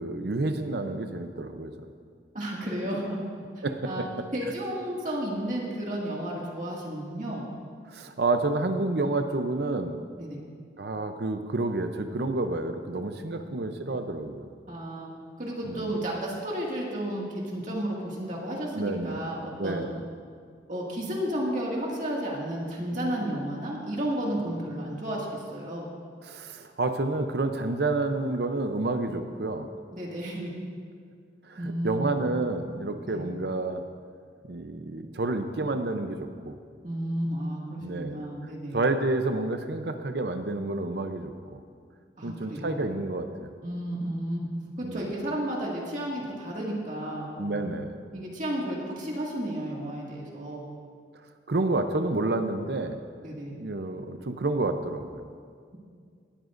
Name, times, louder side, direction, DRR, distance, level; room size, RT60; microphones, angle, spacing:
voice 1, 0.0-1.7 3.6-4.0 7.9-10.0 10.8-14.5 15.6-16.0 18.7-19.3 19.6-20.0 26.3-29.7 31.5-33.8 34.5-36.6 37.8-38.3 38.7-41.6 42.2-43.5 44.8-45.1 47.4-48.0 51.5-53.0 53.5-55.2, right 2 dB, 65° right, 7 dB, 0.6 m, -29 dB
voice 2, 2.3-3.3 3.6-4.1 4.3-7.5 10.2-10.4 14.7-15.1 15.4-19.8 20.7-25.8 29.9-30.5 31.6-32.1 33.1-33.2 36.8-38.8 42.2-42.9 43.6-44.5 44.8-47.7 48.1-50.6 53.2-53.5, right 1 dB, 45° right, -3 dB, 2.1 m, -32 dB
19.0 x 13.0 x 2.6 m, 2.1 s
head